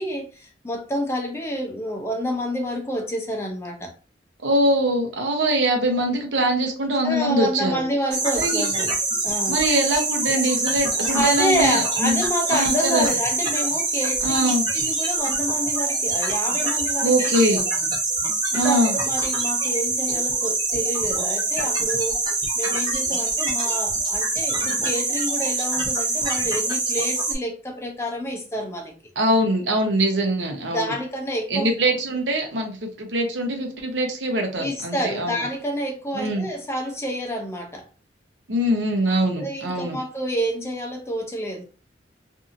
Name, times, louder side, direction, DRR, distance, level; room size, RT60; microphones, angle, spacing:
voice 1, 0.0-3.9 7.0-8.9 9.2-9.6 11.1-17.6 18.5-22.2 22.6-28.9 30.7-31.7 34.6-37.9 39.3-41.6, equal, 15° left, 0.6 m, -28 dB
voice 2, 4.4-7.8 8.3-8.6 9.5-12.2 12.5-13.1 14.2-14.7 17.0-17.7 18.5-19.0 29.2-30.9 31.5-35.4 36.1-36.5 38.5-40.0, right 1 dB, 90° right, 0.8 m, -23 dB
sound 1, 8.1-27.3, right 3 dB, 25° right, 0.9 m, -24 dB
2.7 x 2.6 x 2.5 m
head